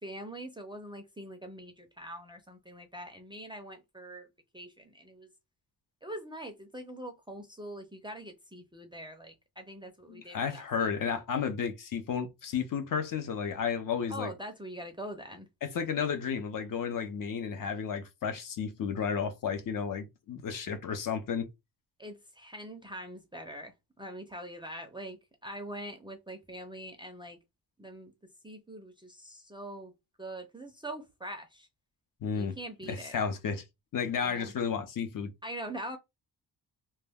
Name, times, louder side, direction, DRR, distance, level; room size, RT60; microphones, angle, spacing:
voice 1, 0.0-4.3 4.5-5.3 6.0-10.9 14.1-15.5 22.0-27.4 27.8-28.1 28.4-29.9 30.2-31.7 32.3-33.1 34.2-34.5 35.4-36.0, right 1 dB, 15° right, 0.4 m, -43 dB
voice 2, 10.1-14.3 15.6-21.5 32.2-32.6 32.8-33.6 33.9-35.3, left 6 dB, 55° left, 0.5 m, -32 dB
2.1 x 2.1 x 3.3 m
wide cardioid pair, 145°, 40 cm